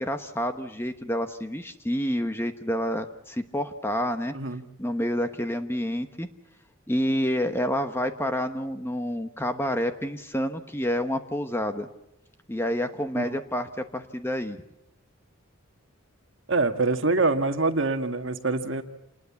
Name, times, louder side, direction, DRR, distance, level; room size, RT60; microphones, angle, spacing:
voice 1, 0.0-4.3 4.8-6.3 6.9-11.9 12.5-14.6, equal, 10° left, 8 dB, 1.1 m, -28 dB
voice 2, 16.5-18.8, right 3 dB, 60° right, 7 dB, 1.7 m, -25 dB
28.0 x 20.5 x 7.1 m, 0.85 s
head